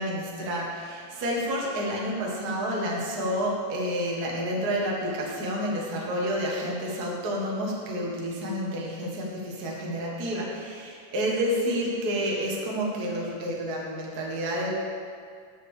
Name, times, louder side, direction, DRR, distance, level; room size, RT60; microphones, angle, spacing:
voice 1, 0.0-14.7, equal, 50° right, -3 dB, 1.1 m, -29 dB
9.2 x 6.9 x 6.4 m, 2.2 s
omnidirectional pair, 4.3 m